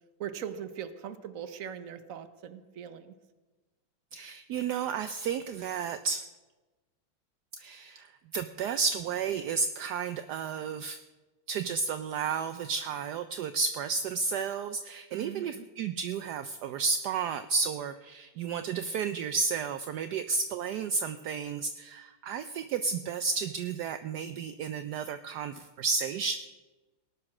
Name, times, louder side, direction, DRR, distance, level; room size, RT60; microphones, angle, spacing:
voice 1, 0.2-3.1 15.1-15.7, right 8 dB, 50° right, 11 dB, 1.2 m, -40 dB
voice 2, 4.1-6.2 7.5-11.0 11.5-26.4, right 5 dB, 70° right, 11 dB, 1.0 m, -32 dB
18.5 x 9.8 x 6.1 m, 1.2 s
omnidirectional pair, 2.2 m